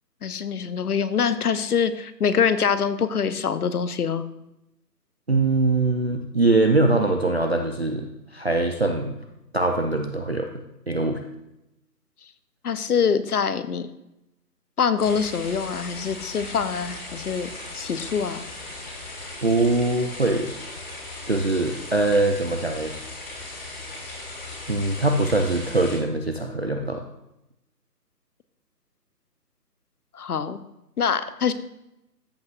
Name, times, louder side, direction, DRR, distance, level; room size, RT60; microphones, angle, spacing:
voice 1, 0.2-4.2 12.6-13.9 14.8-17.5 17.7-18.5 30.1-30.6 31.0-31.5, left 6 dB, 65° left, 13 dB, 0.8 m, -24 dB
voice 2, 5.3-9.1 9.5-10.5 10.9-11.2 19.4-20.5 21.3-22.9 24.7-27.0, right 2 dB, 40° right, 4 dB, 0.5 m, -22 dB
sound 1, 15.0-26.0, left 2 dB, 35° left, 3.7 m, -38 dB
13.5 x 7.8 x 2.5 m, 0.89 s
hypercardioid pair, 165°, 49 cm